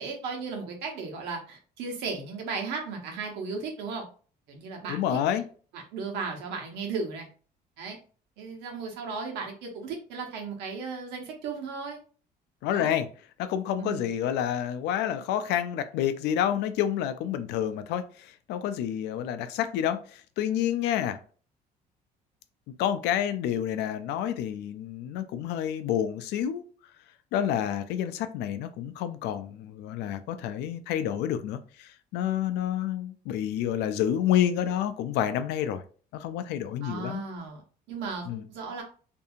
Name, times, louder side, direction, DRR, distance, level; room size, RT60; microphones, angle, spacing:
voice 1, 0.0-4.0 4.5-5.0 5.7-7.3 7.8-8.0 8.4-12.0 12.7-12.9 13.8-14.1 36.8-37.6 37.9-38.8, right 4 dB, 85° right, 1.0 m, -35 dB
voice 2, 4.9-5.4 12.6-13.1 13.4-21.2 22.8-26.6 27.3-35.8 36.1-37.2 38.3-38.4, left 10 dB, 85° left, 0.4 m, -29 dB
2.7 x 2.6 x 2.4 m
cardioid pair, 110°, 17 cm